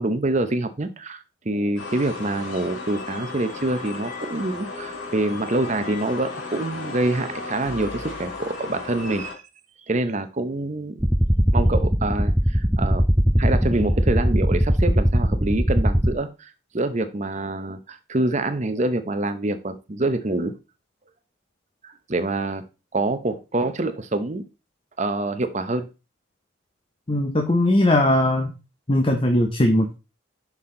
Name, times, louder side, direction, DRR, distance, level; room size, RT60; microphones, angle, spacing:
voice 1, 0.0-9.4 9.9-11.0 11.5-13.1 13.4-20.6 21.8-22.6 22.9-24.4 25.0-25.9, right 2 dB, 35° right, 0.7 m, -26 dB
sound 1, 1.8-9.3, left 3 dB, 65° left, 2.2 m, -35 dB
sound 2, 11.0-16.1, equal, 5° right, 0.4 m, -20 dB
voice 2, 27.1-28.5 28.9-30.0, left 1 dB, 25° left, 0.7 m, -19 dB
6.4 x 5.6 x 3.7 m
head